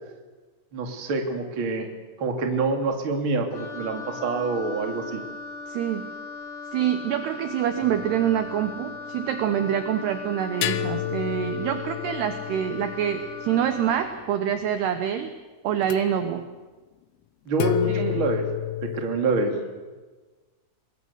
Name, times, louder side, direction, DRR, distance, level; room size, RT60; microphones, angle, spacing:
voice 1, 0.7-1.9 2.2-5.2 17.5-18.5 18.8-19.6, right 3 dB, 35° right, 3 dB, 2.6 m, -26 dB
Wind instrument woodwind instrument, 3.5-14.2, left 4 dB, 45° left, 3.8 m, -39 dB
voice 2, 5.7-6.1 6.7-15.3 15.6-16.4 17.9-18.1, right 9 dB, 70° right, 8 dB, 2.7 m, -26 dB
sound 1, 7.8-9.0 10.6-14.4 15.8-16.0 17.6-19.2, left 14 dB, 90° left, 3.8 m, -31 dB
26.5 x 21.0 x 8.2 m, 1.3 s
omnidirectional pair, 5.8 m